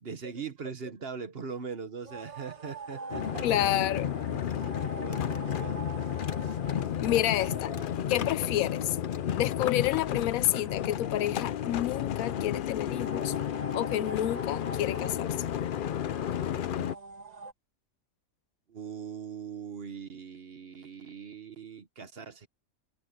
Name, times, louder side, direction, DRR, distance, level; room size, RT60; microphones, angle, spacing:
voice 1, 0.0-3.9 4.3-5.8 18.7-22.5, right 6 dB, 45° right, 1.3 m, -41 dB
sound 1, 2.0-17.5, right 3 dB, 30° right, 1.5 m, -46 dB
sound 2, 3.1-16.9, left 9 dB, 60° left, 0.5 m, -32 dB
voice 2, 3.4-4.1 7.0-7.8 8.1-9.0 9.4-13.3 13.7-15.4, left 13 dB, 80° left, 1.0 m, -29 dB
omnidirectional pair, 1.4 m